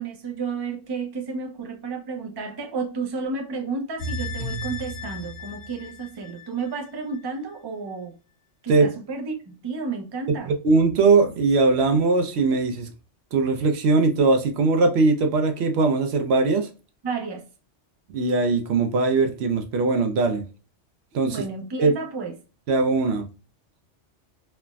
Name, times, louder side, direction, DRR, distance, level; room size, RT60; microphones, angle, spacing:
voice 1, 0.0-8.1 8.6-10.5 17.0-17.4 21.2-22.3, right 4 dB, 35° right, 0.4 m, -32 dB
sound 1, 4.0-7.2 7.6-7.7, left 1 dB, 50° left, 1.2 m, -34 dB
voice 2, 10.5-12.9 13.3-16.7 18.1-20.4 21.1-21.4 21.8-21.9 22.7-23.3, right 3 dB, 65° right, 0.8 m, -20 dB
3.2 x 2.0 x 2.3 m
omnidirectional pair, 1.2 m